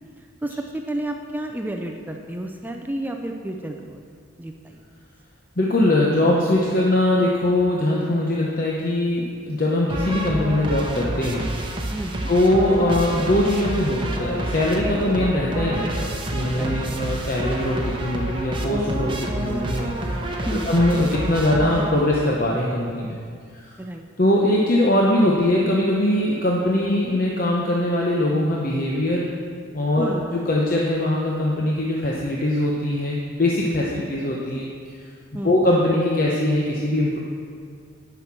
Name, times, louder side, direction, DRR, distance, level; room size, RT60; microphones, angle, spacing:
voice 1, 0.4-4.0 4.4-4.8 11.9-12.3 16.6-16.8 20.5-20.7 23.8-24.0 30.0-30.2 34.0-34.1 35.3-35.6, right 1 dB, 10° right, 3 dB, 0.4 m, -31 dB
voice 2, 5.6-11.5 12.3-19.9 20.5-23.2 24.2-29.3 29.7-34.7 35.4-37.2, left 1 dB, 45° left, -3 dB, 0.9 m, -21 dB
sound 1, 9.9-22.3, right 1 dB, 25° right, 0.9 m, -28 dB
11.0 x 5.9 x 6.1 m, 2.1 s
head